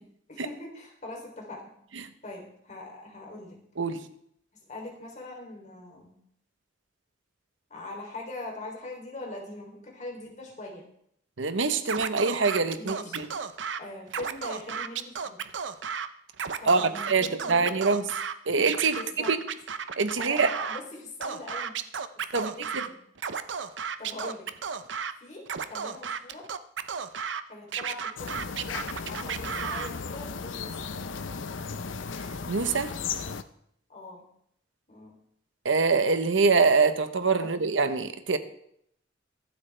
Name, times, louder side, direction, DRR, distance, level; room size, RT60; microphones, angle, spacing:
voice 1, 0.3-1.7 2.2-3.6 4.7-6.1 7.7-10.9 12.8-13.2 13.8-15.4 16.6-17.8 19.0-19.3 20.2-21.8 22.2-23.0 23.8-24.5 25.2-26.5 27.5-30.8 33.9-34.2 34.9-35.2 37.4-37.5, left 2 dB, 40° left, 0 dB, 3.4 m, -42 dB
voice 2, 11.4-13.3 16.7-18.0 18.5-19.0 19.3-19.4 20.0-20.5 22.3-22.8 32.5-32.9 35.6-38.4, right 4 dB, 85° right, 10 dB, 1.0 m, -24 dB
Scratching (performance technique), 11.9-13.8 14.1-16.1 16.3-18.3 18.7-20.8 21.2-22.9 23.2-25.1 25.5-27.4 27.7-29.9, right 6 dB, 70° right, 0.7 m, -33 dB
sound 1, 28.2-33.4, left 5 dB, 85° left, 0.7 m, -35 dB
23.5 x 8.2 x 3.4 m, 0.71 s
head